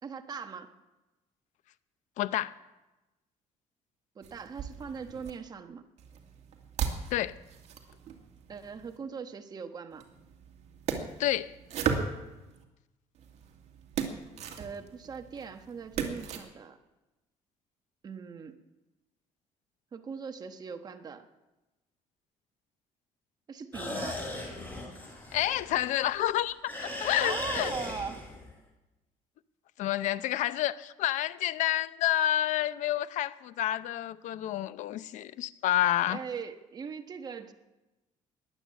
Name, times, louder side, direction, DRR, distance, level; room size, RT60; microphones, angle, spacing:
voice 1, 0.0-0.7 4.1-5.8 8.5-10.1 14.6-16.8 18.0-18.6 19.9-21.3 23.5-24.2 27.2-28.2 36.1-37.5, right 6 dB, 30° right, 1.2 m, -40 dB
voice 2, 2.2-2.5 7.1-7.3 11.2-11.5 25.3-26.6 26.8-27.7 29.8-36.2, left 13 dB, 75° left, 0.7 m, -29 dB
sound 1, 4.2-5.3 6.0-9.0 9.9-12.6 13.2-16.4, right 6 dB, 60° right, 2.2 m, -37 dB
sound 2, 23.7-26.3 26.7-28.5, left 2 dB, 15° left, 4.8 m, -37 dB
20.5 x 8.7 x 7.5 m
cardioid pair, 145°, 13 cm